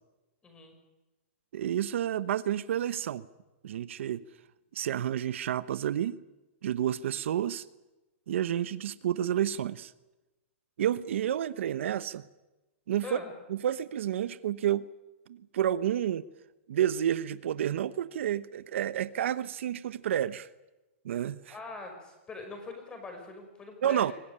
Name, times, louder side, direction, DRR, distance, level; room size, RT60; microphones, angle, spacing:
voice 1, 0.4-0.8 13.0-13.3 21.5-24.1, left 3 dB, 15° left, 5 dB, 5.5 m, -42 dB
voice 2, 1.5-3.3 3.6-4.2 4.7-6.2 6.6-7.6 8.3-9.9 10.8-12.2 12.9-13.2 13.5-14.8 15.3-16.2 16.7-20.5 21.0-21.4 23.8-24.1, right 10 dB, 70° right, 15 dB, 1.0 m, -30 dB
24.0 x 18.0 x 10.0 m, 1.1 s
hypercardioid pair, 155°, 7 cm